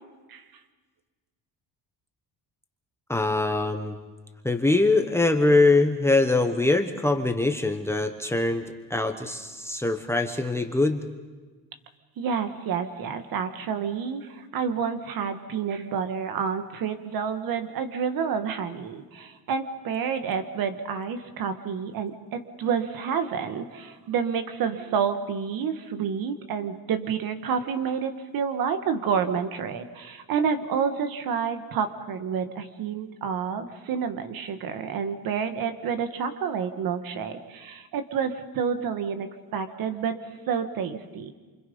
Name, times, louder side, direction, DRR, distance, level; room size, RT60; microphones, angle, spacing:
voice 1, 3.1-4.0 4.4-8.6 8.9-11.1, left 2 dB, 5° left, 5 dB, 1.0 m, -23 dB
voice 2, 12.2-40.2 40.5-41.3, right 6 dB, 60° right, 8 dB, 1.9 m, -29 dB
28.0 x 26.0 x 5.5 m, 1.3 s
cardioid pair, 175°, 39 cm